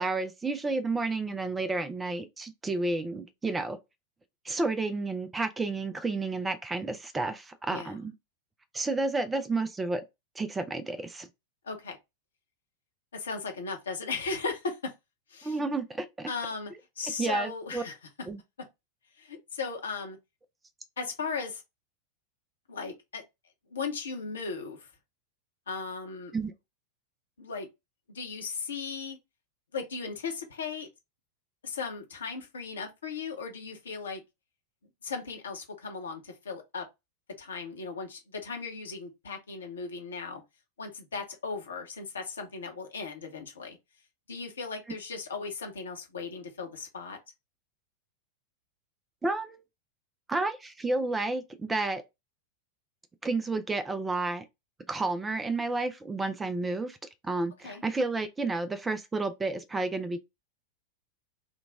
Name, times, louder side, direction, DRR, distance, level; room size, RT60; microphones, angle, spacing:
voice 1, 0.0-3.8 4.4-8.1 8.7-10.0 10.4-11.3 15.4-16.3 17.2-17.8 18.3-18.4 26.3-26.5 49.2-49.6 50.3-52.0 53.2-54.4 54.9-57.0 57.2-60.2, right 3 dB, 10° right, 0.5 m, -31 dB
voice 2, 11.6-12.0 13.1-14.9 15.3-15.6 16.3-18.0 19.2-20.2 21.0-21.6 22.7-23.2 23.7-24.9 25.7-26.3 27.4-27.7 28.1-29.2 29.7-30.9 31.6-34.2 35.0-36.9 37.4-40.4 40.8-43.8 44.3-47.2 57.6-57.8, left 4 dB, 70° left, 1.0 m, -37 dB
3.8 x 2.3 x 3.5 m
figure-of-eight pair, 90°, 0 cm